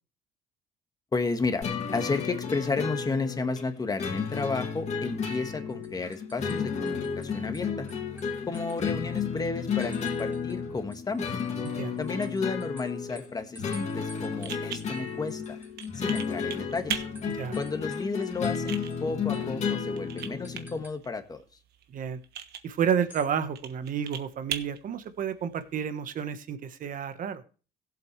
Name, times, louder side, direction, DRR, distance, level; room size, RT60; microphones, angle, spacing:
voice 1, 1.1-1.7 1.9-7.9 8.5-11.4 12.0-15.6 15.9-17.0 17.6-21.4, left 4 dB, 20° left, 1.6 m, -32 dB
sound 1, 1.6-20.8, left 6 dB, 40° left, 2.6 m, -33 dB
sound 2, 5.8-7.3 7.5-9.2 9.8-10.6 10.9-16.5 16.7-16.9 17.1-18.6 18.9-19.0 19.3-19.5 20.2-21.0 22.9-23.3, right 1 dB, 10° right, 2.8 m, -52 dB
sound 3, 13.8-25.8, right 9 dB, 70° right, 1.4 m, -42 dB
voice 2, 22.6-27.4, right 8 dB, 50° right, 1.3 m, -30 dB
16.5 x 7.9 x 3.3 m
cardioid pair, 110°, 17 cm